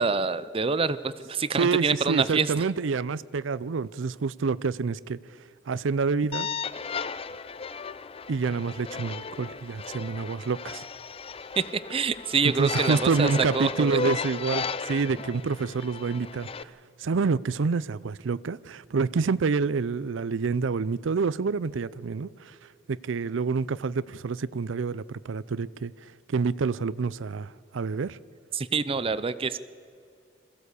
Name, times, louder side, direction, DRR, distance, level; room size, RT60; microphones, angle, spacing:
voice 1, 0.0-2.5 11.6-14.0 28.5-29.6, right 4 dB, 30° right, 0.5 m, -26 dB
voice 2, 1.5-5.2 5.7-6.5 8.3-10.8 12.6-16.7 17.0-22.5 22.9-25.9 26.3-28.2, right 4 dB, 80° right, 0.5 m, -27 dB
sound 1, 6.3-16.6, left 5 dB, 30° left, 0.5 m, -35 dB
22.0 x 15.5 x 8.3 m
head